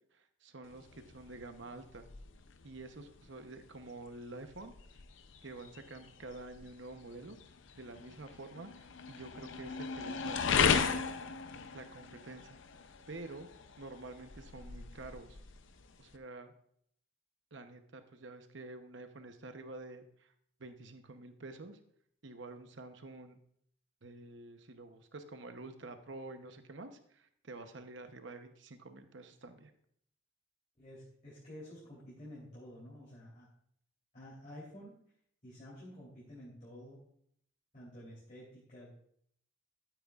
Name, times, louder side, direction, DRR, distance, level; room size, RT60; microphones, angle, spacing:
voice 1, 0.1-2.1 2.6-4.7 5.4-7.4 7.8-11.2 11.7-12.6 13.1-13.5 13.8-15.4 16.0-16.5 17.5-20.3 20.6-21.8 22.2-23.4 24.0-29.7, right 2 dB, 60° right, 8 dB, 0.9 m, -48 dB
sound 1, 0.6-16.2, left 6 dB, 65° left, 0.6 m, -38 dB
voice 2, 30.8-33.5 34.1-34.9 35.4-37.0 37.7-38.9, equal, 35° left, -8 dB, 3.2 m, -51 dB
13.0 x 9.1 x 2.4 m, 0.67 s
head